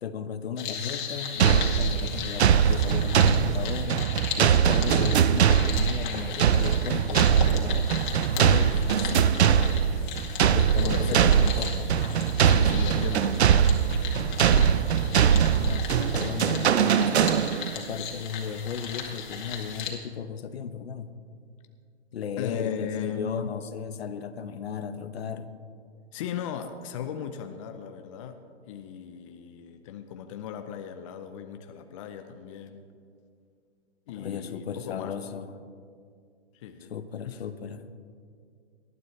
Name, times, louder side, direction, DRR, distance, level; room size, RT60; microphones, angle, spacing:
voice 1, 0.0-4.1 4.4-7.9 8.4-9.9 10.5-11.9 14.4-14.9 15.6-17.4 17.7-21.1 22.1-25.5 34.1-35.5 36.8-37.8, left 7 dB, 60° left, 11 dB, 1.0 m, -35 dB
sound 1, 0.6-19.9, left 7 dB, 45° left, 2.2 m, -37 dB
sound 2, 1.4-17.8, right 8 dB, 70° right, 0.6 m, -22 dB
voice 2, 10.8-11.3 12.4-14.6 22.4-23.5 26.1-28.4 28.7-32.8 34.1-35.2 36.5-36.9 37.2-37.4, left 8 dB, 30° left, 7 dB, 0.6 m, -37 dB
19.0 x 12.0 x 3.2 m, 2.2 s
hypercardioid pair, 140°, 34 cm